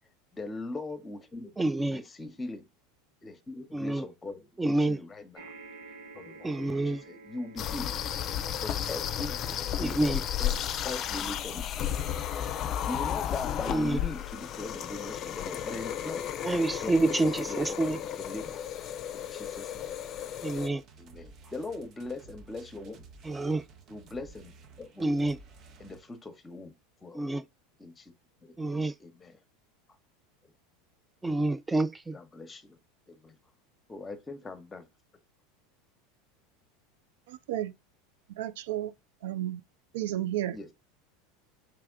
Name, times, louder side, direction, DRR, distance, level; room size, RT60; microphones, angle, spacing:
voice 1, 0.3-1.6 1.9-2.6 3.2-5.5 6.1-7.9 8.6-11.8 12.9-16.3 16.8-18.6 19.1-20.3 21.0-23.0 23.9-25.1 25.8-26.7 27.0-27.2 27.8-28.1 28.4-28.6 29.0-29.4 32.1-32.8 33.1-33.3 33.9-34.9 40.5-40.7, left 2 dB, 20° left, 1.0 m, -41 dB
voice 2, 1.6-2.0 3.7-4.1 4.6-5.0 6.4-7.0 9.8-10.2 13.7-14.0 16.4-18.0 20.4-20.8 23.2-23.6 25.0-25.4 27.1-27.5 28.6-28.9 31.2-32.2, right 2 dB, 10° right, 0.4 m, -28 dB
sound 1, 5.3-19.9 20.7-20.8 21.0-21.1, right 3 dB, 90° right, 1.3 m, -55 dB
sound 2, 7.6-20.7, left 10 dB, 45° left, 0.5 m, -33 dB
sound 3, 20.8-26.3, right 4 dB, 45° right, 0.9 m, -53 dB
voice 3, 37.3-37.7 38.4-38.9 39.2-39.6 39.9-40.6, right 13 dB, 75° right, 0.4 m, -32 dB
3.4 x 3.3 x 3.5 m
hypercardioid pair, 95°, 0 cm